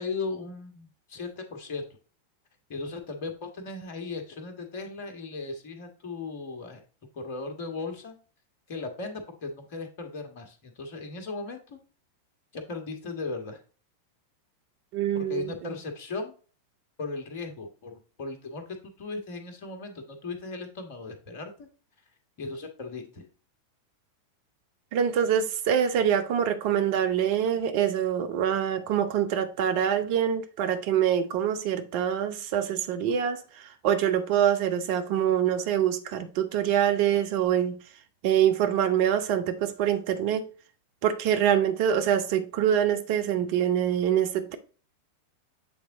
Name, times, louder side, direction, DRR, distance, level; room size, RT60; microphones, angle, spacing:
voice 1, 0.0-1.8 2.7-6.8 7.1-8.2 8.7-11.8 12.5-13.6 15.1-16.4 17.0-21.7 22.4-23.3, left 3 dB, 50° left, 1.5 m, -37 dB
voice 2, 14.9-15.5 24.9-37.8 38.2-40.4 41.0-44.5, right 9 dB, 45° right, 0.9 m, -25 dB
8.1 x 3.5 x 3.8 m
figure-of-eight pair, 90°, 0 cm